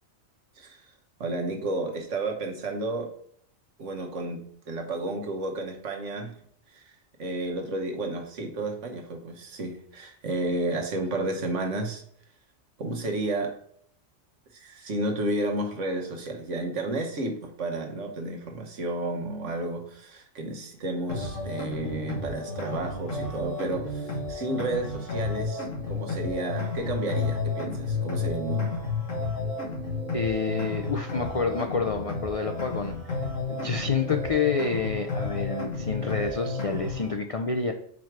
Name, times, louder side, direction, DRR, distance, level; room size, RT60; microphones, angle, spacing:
voice 1, 0.6-0.9 1.2-3.1 3.8-6.4 6.7-6.9 7.2-12.0 12.8-13.6 14.5-28.8, right 2 dB, 70° right, 2 dB, 1.4 m, -32 dB
sound 1, 21.1-37.1, left 3 dB, 80° left, 1.6 m, -32 dB
voice 2, 30.1-33.2 33.5-37.7, left 5 dB, 65° left, 5 dB, 0.3 m, -28 dB
4.9 x 4.6 x 5.8 m, 0.65 s
omnidirectional pair, 1.3 m